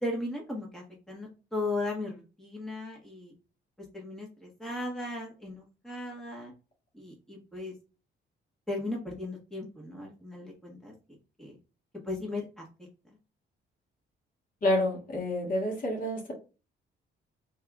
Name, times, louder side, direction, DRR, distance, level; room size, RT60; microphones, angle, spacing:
voice 1, 0.0-3.3 3.9-6.5 6.9-7.7 8.7-10.9 11.4-11.6 12.0-12.6, left 2 dB, 5° left, -2 dB, 1.3 m, -36 dB
voice 2, 14.6-16.3, left 1 dB, 45° left, 0 dB, 1.8 m, -28 dB
3.5 x 3.4 x 2.3 m, 0.32 s
cardioid pair, 90°, 20 cm